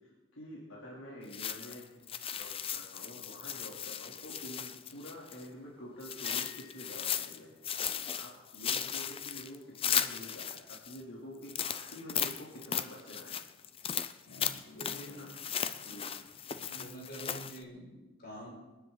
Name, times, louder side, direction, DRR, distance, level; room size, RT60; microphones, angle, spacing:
voice 1, 0.0-7.5 8.1-13.3 15.1-15.3 15.8-16.1, equal, 75° left, -5 dB, 3.1 m, -48 dB
sound 1, 1.3-5.5 6.0-7.4 7.6-11.0 11.4-17.6, left 8 dB, 25° left, 0.5 m, -36 dB
Piano, 6.2-7.7, left 1 dB, 60° right, 1.8 m, -55 dB
voice 2, 14.2-15.3 16.5-18.5, equal, 50° left, -3 dB, 5.8 m, -47 dB
26.0 x 10.5 x 3.9 m, 1.2 s
head